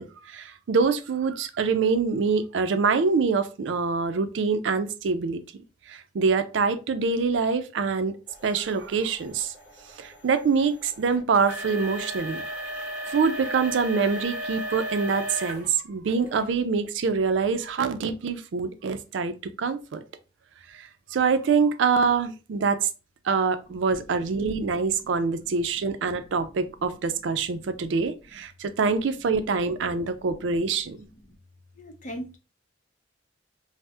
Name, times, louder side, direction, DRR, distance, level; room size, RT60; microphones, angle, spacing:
voice 1, 0.0-5.4 5.9-8.2 8.4-9.5 10.0-12.4 13.1-20.0 20.7-22.9 23.2-31.0, right 5 dB, 75° right, 0.4 m, -25 dB
sound 1, 8.3-15.7 16.1-16.5 17.1-17.2 17.8-17.9, equal, 10° right, 1.5 m, -36 dB
voice 2, 31.8-32.4, equal, 45° left, 0.6 m, -38 dB
2.6 x 2.0 x 3.4 m
head